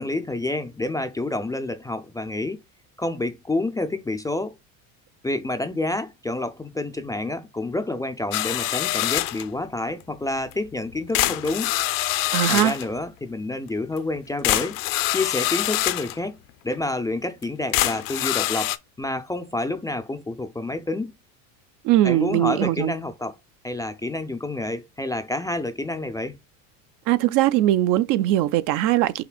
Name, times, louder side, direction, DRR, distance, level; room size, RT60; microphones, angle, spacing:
voice 1, 0.0-2.6 3.0-4.5 5.2-11.7 12.5-14.8 15.1-16.4 16.6-21.1 22.0-23.3 23.6-26.4, left 2 dB, 10° left, 0.4 m, -28 dB
sound 1, 8.3-9.5 10.5-10.6 11.1-12.9 14.0-14.1 14.4-16.2 16.7-16.8 17.4-17.5 17.7-18.8, left 16 dB, 55° left, 0.6 m, -25 dB
voice 2, 12.3-12.7 21.8-22.9 27.1-29.2, right 14 dB, 50° right, 0.5 m, -20 dB
5.8 x 4.1 x 2.2 m
supercardioid pair, 110°, 41 cm